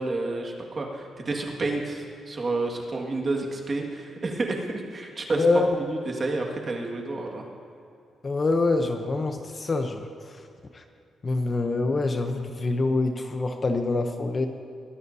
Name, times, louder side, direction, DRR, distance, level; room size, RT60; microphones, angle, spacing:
voice 1, 0.0-5.4 5.8-7.4, right 2 dB, 30° right, 1 dB, 1.8 m, -30 dB
voice 2, 5.4-5.7 8.2-10.1 10.7-10.8 11.2-14.5, left 3 dB, 25° left, 5 dB, 0.7 m, -25 dB
22.0 x 15.5 x 2.7 m, 2.6 s
wide cardioid pair, 155°, 0 cm